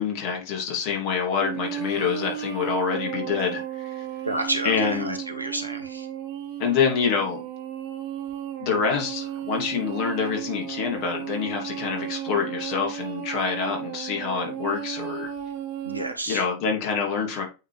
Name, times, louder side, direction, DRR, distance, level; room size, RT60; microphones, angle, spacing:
voice 1, 0.0-4.1 4.6-5.2 6.6-7.4 8.6-15.3 16.3-17.4, left 6 dB, 45° left, 2.9 m, -26 dB
sound 1, 1.4-16.1, right 10 dB, 45° right, 2.0 m, -34 dB
voice 2, 4.2-6.1 15.8-16.4, right 2 dB, 85° right, 1.5 m, -30 dB
8.8 x 4.2 x 3.4 m
figure-of-eight pair, 90°, 0 cm